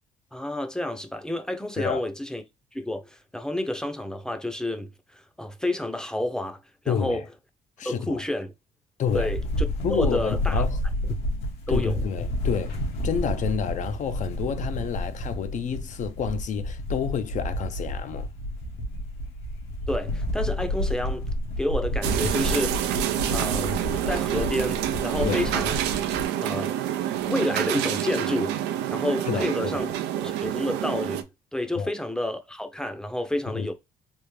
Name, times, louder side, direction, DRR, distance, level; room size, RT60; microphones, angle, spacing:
voice 1, 0.3-2.4 2.7-6.6 6.8-7.2 7.8-8.5 9.1-9.4 9.9-10.6 11.7-12.0 19.9-21.3 21.6-22.8 23.3-23.8 24.1-25.8 26.4-26.8 27.2-28.6 28.9-29.9 30.2-31.3 31.5-33.7, left 1 dB, 5° left, 0.6 m, -29 dB
voice 2, 6.9-7.3 7.8-8.2 9.0-9.3 9.8-10.8 11.7-18.3 25.2-25.5 29.2-29.9 31.7-31.9 33.5-33.7, left 7 dB, 50° left, 0.5 m, -29 dB
sound 1, 9.1-26.2, left 1 dB, 80° left, 1.1 m, -30 dB
sound 2, 22.0-31.2, right 11 dB, 90° right, 0.5 m, -27 dB
3.5 x 2.4 x 3.2 m
cardioid pair, 110°, 17 cm